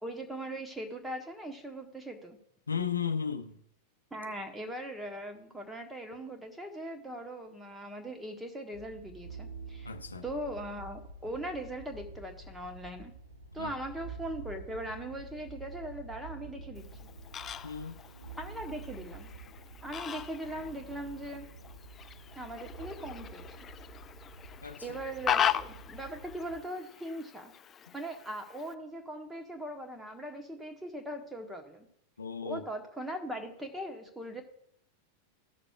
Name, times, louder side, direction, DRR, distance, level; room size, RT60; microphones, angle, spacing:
voice 1, 0.0-2.4 4.1-9.9 10.2-13.1 13.5-16.8 18.4-19.3 19.8-21.5 22.3-23.5 24.8-27.5 27.9-31.9 32.4-34.4, right 1 dB, 5° right, 1.2 m, -40 dB
voice 2, 2.7-3.6 9.8-10.2 13.6-13.7 17.6-18.0 24.6-25.0 32.2-32.6, left 7 dB, 75° left, 0.5 m, -35 dB
sound 1, 8.7-26.6, right 3 dB, 90° right, 0.8 m, -48 dB
Fowl, 16.8-28.7, left 9 dB, 25° left, 0.3 m, -38 dB
14.5 x 6.7 x 2.4 m
figure-of-eight pair, 90°, 0 cm